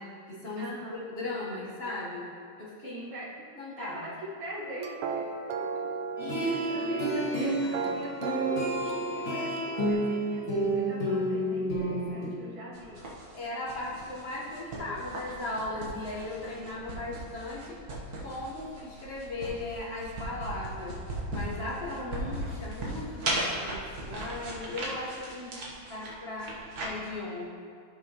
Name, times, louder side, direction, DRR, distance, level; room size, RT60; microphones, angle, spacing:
voice 1, 0.0-2.3 2.6-3.0 3.6-4.1 6.2-8.0 13.3-17.8 18.2-21.0 21.3-25.6 25.9-27.5, left 1 dB, 35° left, -4 dB, 1.1 m, -37 dB
voice 2, 0.6-1.0 2.8-3.3 3.8-5.9 6.4-13.1 14.5-15.0 25.6-26.1, equal, 70° right, -6 dB, 2.5 m, -43 dB
sound 1, 4.6-9.9, right 5 dB, 85° right, 1.5 m, -36 dB
sound 2, 6.2-12.3, right 1 dB, 70° left, 2.7 m, -30 dB
sound 3, 12.7-26.9, right 1 dB, 50° right, 1.6 m, -38 dB
14.0 x 5.6 x 2.9 m, 2.2 s
omnidirectional pair, 2.3 m